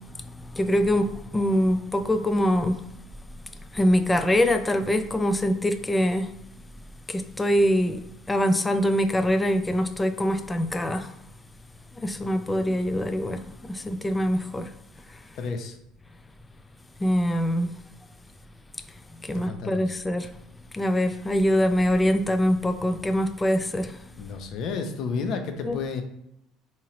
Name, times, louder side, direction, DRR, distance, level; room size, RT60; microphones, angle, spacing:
voice 1, 0.5-2.8 3.7-6.3 7.1-8.0 8.3-11.1 12.0-14.7 17.0-17.7 19.2-20.3 20.7-24.0 25.6-25.8, equal, 15° left, 0.4 m, -24 dB
voice 2, 15.3-15.8 19.3-20.0 24.2-26.0, left 4 dB, 60° left, 0.6 m, -31 dB
3.7 x 2.9 x 2.9 m
hypercardioid pair, 70°, 0 cm